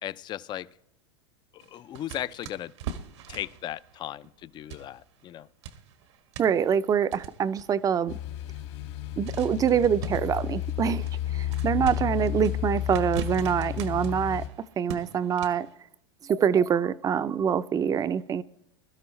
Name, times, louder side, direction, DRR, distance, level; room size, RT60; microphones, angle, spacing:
voice 1, 0.0-0.7 1.5-2.7 3.3-5.5, left 12 dB, 30° left, 0.5 m, -36 dB
sound 1, 1.6-5.4 5.6-8.0 8.5-8.6 9.2-15.7, right 7 dB, 75° right, 1.5 m, -42 dB
voice 2, 6.4-8.2 9.2-11.1 11.3-14.4 14.8-15.7 16.3-18.4, right 8 dB, 25° right, 0.5 m, -25 dB
sound 2, 8.1-14.5, left 12 dB, 70° left, 2.4 m, -32 dB
22.0 x 12.5 x 3.2 m
hypercardioid pair, 115°, 14 cm